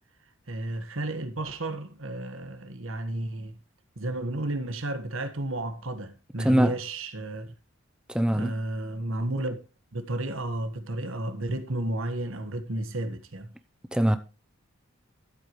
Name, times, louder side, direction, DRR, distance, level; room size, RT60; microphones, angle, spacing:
voice 1, 0.5-3.6 4.0-7.5 8.3-9.6 9.9-13.5, right 1 dB, 70° right, 1.5 m, -32 dB
voice 2, 6.4-6.8 8.1-8.5 13.9-14.2, equal, 5° right, 0.7 m, -22 dB
12.5 x 8.3 x 3.1 m
head